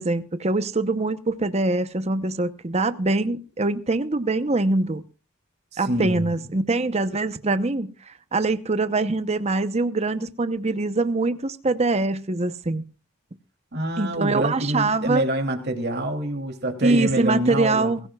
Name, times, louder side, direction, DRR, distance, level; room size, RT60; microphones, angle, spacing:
voice 1, 0.0-5.0 5.8-12.8 14.0-15.2 16.8-18.0, right 2 dB, 30° right, 0.8 m, -23 dB
voice 2, 5.7-6.3 13.7-18.0, right 1 dB, 50° right, 2.9 m, -26 dB
22.5 x 15.0 x 2.3 m
head